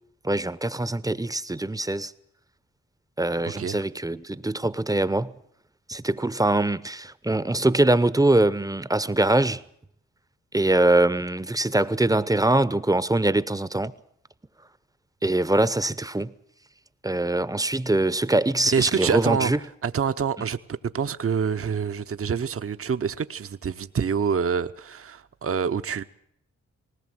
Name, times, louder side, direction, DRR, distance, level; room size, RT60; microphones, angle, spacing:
voice 1, 0.2-2.1 3.2-5.3 5.9-9.6 10.5-13.9 15.2-16.3 17.0-19.6, right 2 dB, 10° right, 0.7 m, -23 dB
voice 2, 3.4-3.8 18.7-19.5 19.8-20.6 20.8-26.0, right 6 dB, 50° right, 0.8 m, -26 dB
19.0 x 18.0 x 7.8 m
cardioid pair, 55°, 30 cm